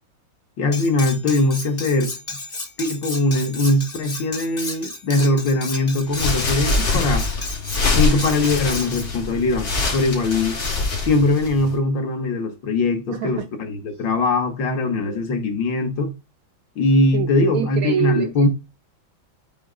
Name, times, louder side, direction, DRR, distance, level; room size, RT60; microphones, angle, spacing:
voice 1, 0.6-2.1 2.8-7.3 7.9-10.6 11.0-16.1 16.8-18.5, left 2 dB, 65° left, 2.0 m, -21 dB
Cutlery silverware, 0.7-9.1, left 2 dB, 25° left, 1.0 m, -33 dB
sound 1, 6.1-11.8, left 3 dB, 80° left, 3.4 m, -24 dB
voice 2, 13.1-13.5 15.0-15.2 17.1-18.5, right 9 dB, 80° right, 0.8 m, -26 dB
8.6 x 3.6 x 3.8 m
omnidirectional pair, 2.2 m